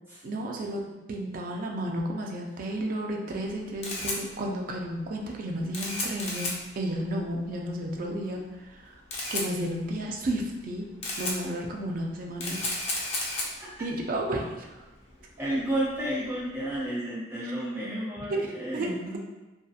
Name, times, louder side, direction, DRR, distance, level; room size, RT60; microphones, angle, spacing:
voice 1, 0.2-0.8 1.1-9.0 9.3-10.8 11.2-12.6 13.8-14.9 17.4-17.6 18.3-18.9, right 1 dB, 50° right, 0 dB, 0.4 m, -32 dB
Camera, 3.4-16.8, left 2 dB, 35° left, 0.5 m, -36 dB
voice 2, 15.4-19.2, right 1 dB, 15° right, -10 dB, 1.1 m, -31 dB
2.7 x 2.3 x 2.4 m, 1.1 s
head